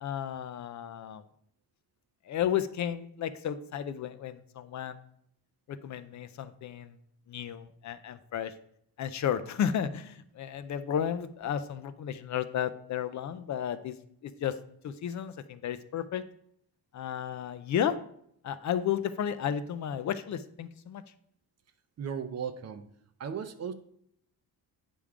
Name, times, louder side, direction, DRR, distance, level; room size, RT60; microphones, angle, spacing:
voice 1, 0.0-1.2 2.3-5.0 5.7-7.0 7.3-8.5 9.0-14.0 14.2-14.6 14.8-16.2 16.9-18.0 18.4-21.0, left 9 dB, 50° left, 12 dB, 0.4 m, -33 dB
voice 2, 22.0-22.8 23.2-23.7, right 7 dB, 45° right, 10 dB, 0.6 m, -36 dB
8.6 x 3.6 x 4.8 m, 0.68 s
cardioid pair, 150°, 38 cm